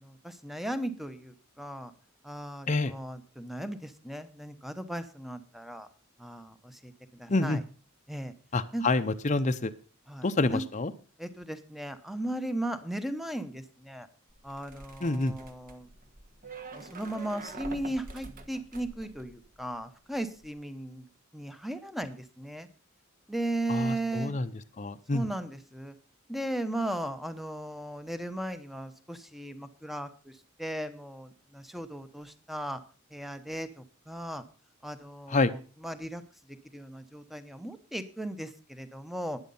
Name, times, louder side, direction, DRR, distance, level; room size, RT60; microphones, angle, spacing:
voice 1, 0.0-1.9 2.2-5.9 6.2-7.6 8.1-8.3 8.7-8.8 10.1-10.6 11.2-14.1 14.4-15.9 16.7-22.7 23.3-24.3 25.1-25.9 26.3-32.8 33.1-34.4 34.8-36.2 36.5-39.4, right 1 dB, ahead, 10 dB, 1.0 m, -37 dB
voice 2, 7.3-7.6 8.5-9.7 10.2-10.9 15.0-15.3 23.7-24.5 24.8-25.2 35.3-35.5, left 2 dB, 35° left, 9 dB, 0.7 m, -27 dB
sound 1, 14.3-19.8 20.1-20.5, right 3 dB, 40° right, 1.4 m, -46 dB
12.0 x 9.7 x 5.5 m, 0.38 s
head